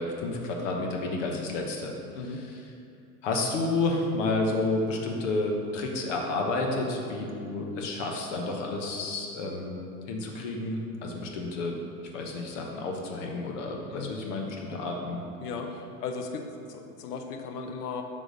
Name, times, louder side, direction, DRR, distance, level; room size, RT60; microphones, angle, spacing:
voice 1, 0.0-1.9 2.2-2.7 3.2-9.8 10.1-15.2, left 2 dB, 55° left, 0 dB, 1.1 m, -31 dB
voice 2, 13.9-14.2 15.4-15.7 16.0-16.4 16.7-18.0, left 5 dB, 85° left, 4 dB, 0.8 m, -36 dB
6.5 x 3.7 x 5.0 m, 2.5 s
supercardioid pair, 165°, 45 cm